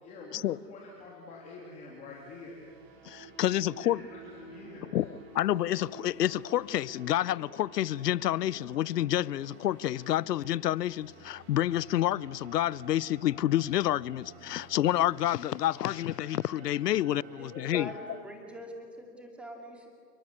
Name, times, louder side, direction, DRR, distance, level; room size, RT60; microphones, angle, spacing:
voice 1, 0.0-2.6 3.8-4.9, left 2 dB, 15° left, 3.1 m, -47 dB
sound 1, 1.9-18.2, right 3 dB, 40° right, 4.9 m, -51 dB
voice 2, 3.1-4.0 4.8-17.9, left 13 dB, 70° left, 0.7 m, -29 dB
voice 3, 17.4-19.9, equal, ahead, 2.3 m, -44 dB
29.5 x 19.5 x 9.7 m
hypercardioid pair, 170°, 50 cm